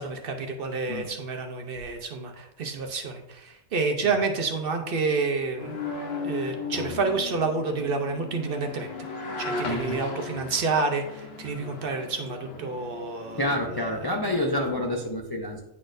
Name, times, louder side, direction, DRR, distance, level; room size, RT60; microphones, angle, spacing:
voice 1, 0.0-5.9 6.2-8.9 9.4-14.1, right 4 dB, 55° right, 5 dB, 0.7 m, -29 dB
sound 1, 5.6-15.1, left 3 dB, 60° left, 1.0 m, -37 dB
voice 2, 9.6-10.0 13.4-15.6, left 1 dB, 35° left, 1 dB, 0.3 m, -28 dB
9.4 x 4.1 x 2.5 m, 0.91 s
omnidirectional pair, 1.3 m